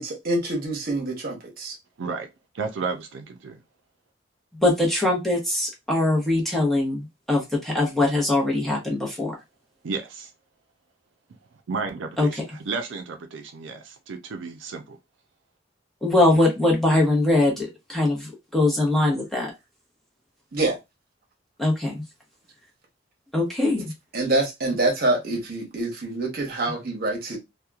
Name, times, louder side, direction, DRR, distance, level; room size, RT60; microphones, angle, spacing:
voice 1, 0.0-1.8 20.5-20.8 24.1-27.4, right 2 dB, 50° right, 0.9 m, -26 dB
voice 2, 2.0-2.3 2.5-3.6 9.8-10.3 11.7-12.3 12.7-15.0, right 4 dB, 80° right, 0.4 m, -32 dB
voice 3, 4.5-9.4 12.2-12.6 16.0-19.5 21.6-22.0 23.3-23.9, left 2 dB, ahead, 0.8 m, -22 dB
2.8 x 2.2 x 2.3 m
head